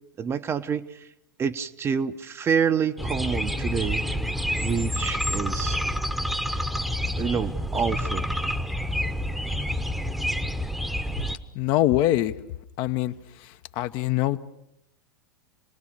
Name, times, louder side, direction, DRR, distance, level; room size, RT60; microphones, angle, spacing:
voice 1, 0.2-1.0 1.4-4.1 4.6-5.8 7.2-8.3, right 6 dB, 25° right, 10 dB, 1.0 m, -27 dB
sound 1, 3.0-11.4, equal, ahead, 1.1 m, -28 dB
voice 2, 11.5-12.3 12.8-13.1 13.8-14.4, left 14 dB, 40° left, 9 dB, 1.0 m, -23 dB
29.0 x 20.0 x 6.8 m, 0.80 s
figure-of-eight pair, 90°, 11 cm